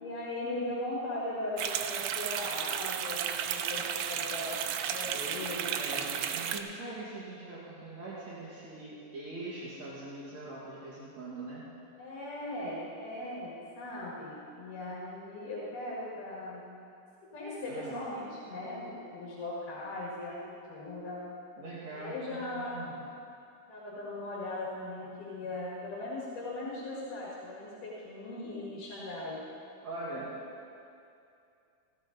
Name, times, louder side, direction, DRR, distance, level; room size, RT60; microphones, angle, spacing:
voice 1, 0.0-4.6 4.9-6.1 12.0-16.6 17.3-21.2 21.9-23.0 23.7-29.4, left 2 dB, 85° left, -6 dB, 3.5 m, -39 dB
sound 1, 1.6-6.6, right 9 dB, 90° right, 2.2 m, -33 dB
voice 2, 5.7-11.6 17.7-18.0 21.6-23.0 29.8-30.3, right 2 dB, 60° right, -7 dB, 3.1 m, -42 dB
15.0 x 12.5 x 4.1 m, 2.6 s
omnidirectional pair, 3.6 m